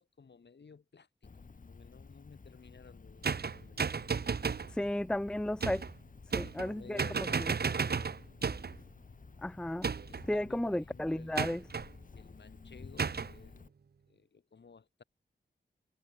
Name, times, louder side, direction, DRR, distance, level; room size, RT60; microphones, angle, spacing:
voice 1, 0.0-4.1 6.4-8.2 10.1-11.4 12.2-13.7 14.1-15.0, left 5 dB, 65° left, 4.0 m, -55 dB
Cricket, 1.2-13.7, left 4 dB, 45° left, 1.6 m, -53 dB
sound 1, 3.2-4.7 5.6-5.9 6.3-6.7 7.0-8.8 9.8-10.3 11.4-11.9 13.0-13.3, right 5 dB, 55° right, 1.2 m, -33 dB
voice 2, 4.7-5.8 6.3-7.5 9.4-9.9 10.3-11.6, left 1 dB, 5° left, 0.5 m, -34 dB
cardioid pair, 55°, 19 cm